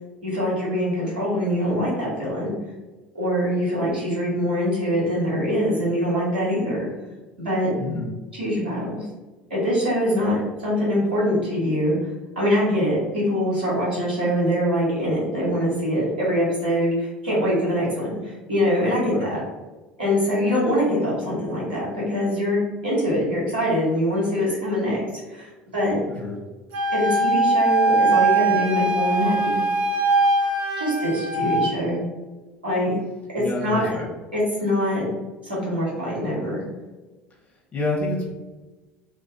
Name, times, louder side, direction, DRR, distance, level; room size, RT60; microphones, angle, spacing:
voice 1, 0.2-2.5 3.1-6.9 7.4-7.7 8.3-9.1 9.5-12.0 12.3-19.4 20.0-25.0 25.3-26.0 26.9-29.6 30.8-32.0 32.6-33.0 33.3-33.9 34.3-35.1 35.4-36.6, equal, 85° right, -7 dB, 1.0 m, -23 dB
voice 2, 7.8-8.1 10.2-10.3 19.1-19.3 26.1-26.3 31.4-31.5 33.4-34.1 37.7-38.3, left 2 dB, 30° left, -2 dB, 0.9 m, -28 dB
Wind instrument woodwind instrument, 26.7-31.7, right 2 dB, 45° right, 0.8 m, -21 dB
2.4 x 2.3 x 2.4 m, 1.2 s
figure-of-eight pair, 65°, 5 cm